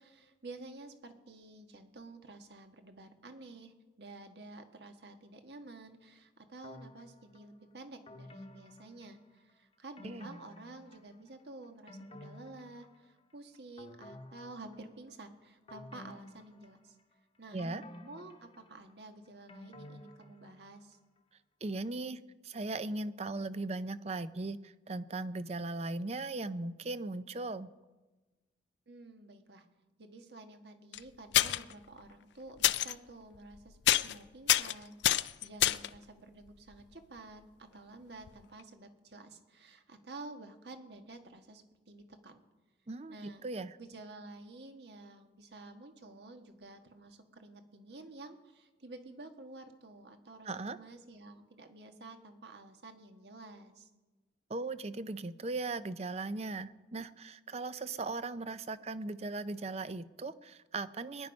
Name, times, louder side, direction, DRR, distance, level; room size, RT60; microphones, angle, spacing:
voice 1, 0.0-17.0 17.4-21.0 28.9-29.6 30.0-37.4 37.7-42.4 43.1-43.4 43.8-53.9, right 2 dB, 65° right, 6 dB, 1.5 m, -51 dB
sound 1, 6.6-7.4 8.1-9.5 10.0-11.3 11.6-13.3 13.8-15.1 15.7-17.1 17.6-20.8 21.2-21.3, left 1 dB, 30° left, 1.0 m, -52 dB
voice 2, 21.6-27.7 42.9-43.7 50.4-50.8 54.5-61.3, right 3 dB, 35° right, 14 dB, 0.5 m, -38 dB
sound 2, 30.9-31.0 31.3-31.7 32.6-32.9 33.4-33.6 33.9-34.2 34.5-36.0 38.3-38.4 38.6-38.7, left 13 dB, 75° left, 0.4 m, -27 dB
22.5 x 10.5 x 5.3 m, 1.2 s
head